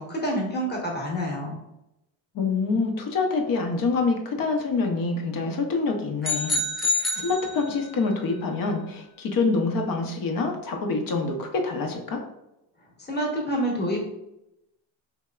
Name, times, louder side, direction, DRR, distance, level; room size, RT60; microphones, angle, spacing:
voice 1, 0.0-1.6 13.1-14.0, equal, 20° left, -1 dB, 1.1 m, -27 dB
voice 2, 2.3-12.2, left 4 dB, 45° left, 3 dB, 0.8 m, -26 dB
sound 1, 6.2-8.1, left 2 dB, ahead, 0.4 m, -27 dB
3.2 x 2.7 x 2.3 m, 0.88 s
supercardioid pair, 75°, 47 cm